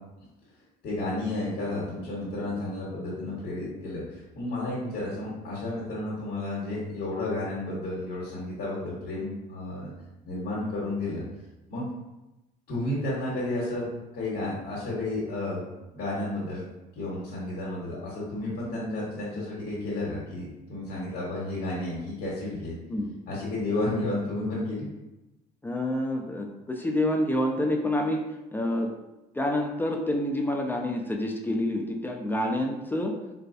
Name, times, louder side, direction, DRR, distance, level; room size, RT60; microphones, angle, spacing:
voice 1, 0.8-9.9 10.2-11.2 11.7-11.9 12.7-13.9 14.1-16.6 16.9-22.7 23.3-24.9, left 2 dB, 65° left, -6 dB, 1.1 m, -32 dB
voice 2, 25.6-28.2 28.5-28.9 29.3-33.2, left 1 dB, 10° left, 2 dB, 0.3 m, -28 dB
4.0 x 2.3 x 2.5 m, 0.99 s
cardioid pair, 110°, 17 cm